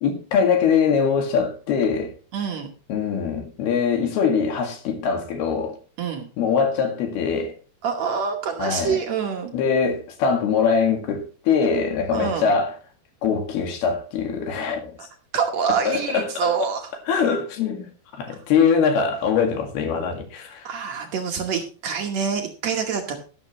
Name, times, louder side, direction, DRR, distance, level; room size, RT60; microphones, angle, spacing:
voice 1, 0.0-2.1 2.9-5.8 6.4-7.5 8.6-9.0 9.5-12.8 13.2-15.1 15.8-16.7 17.1-17.9 18.1-20.7, left 6 dB, 70° left, 3.9 m, -22 dB
voice 2, 2.3-2.7 6.0-6.3 7.8-9.5 12.1-12.5 15.0-15.1 15.3-16.9 20.6-23.2, right 6 dB, 70° right, 1.6 m, -26 dB
12.5 x 12.0 x 3.1 m
omnidirectional pair, 4.8 m